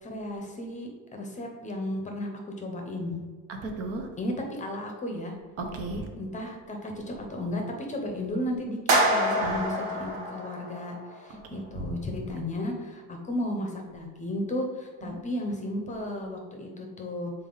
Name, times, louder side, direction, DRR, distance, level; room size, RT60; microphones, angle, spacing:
voice 1, 0.0-2.3 2.6-3.2 4.2-5.4 6.2-17.3, left 1 dB, 20° left, 2 dB, 0.8 m, -34 dB
voice 2, 3.5-4.1 5.6-6.1 9.4-9.6 11.4-12.0 15.0-15.2, right 2 dB, 45° right, 3 dB, 0.9 m, -35 dB
sound 1, 8.9-11.1, right 1 dB, 80° right, 1.7 m, -26 dB
5.8 x 4.1 x 3.9 m, 1.4 s
cardioid pair, 150°, 33 cm